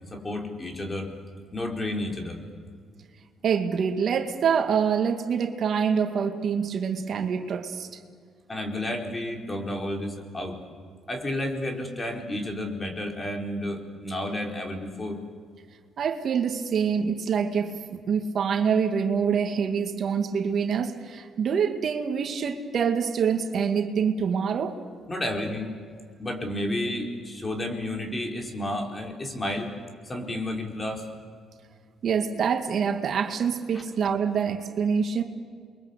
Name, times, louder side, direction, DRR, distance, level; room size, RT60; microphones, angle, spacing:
voice 1, 0.1-1.1 1.5-2.4 8.5-10.6 11.1-15.2 25.1-25.7 26.2-29.7 30.0-31.1, left 1 dB, 25° left, 2 dB, 4.6 m, -31 dB
voice 2, 3.4-7.9 16.0-24.8 32.0-35.2, right 6 dB, 60° right, 6 dB, 2.0 m, -26 dB
29.0 x 23.0 x 8.3 m, 2.1 s
cardioid pair, 90°, 0 cm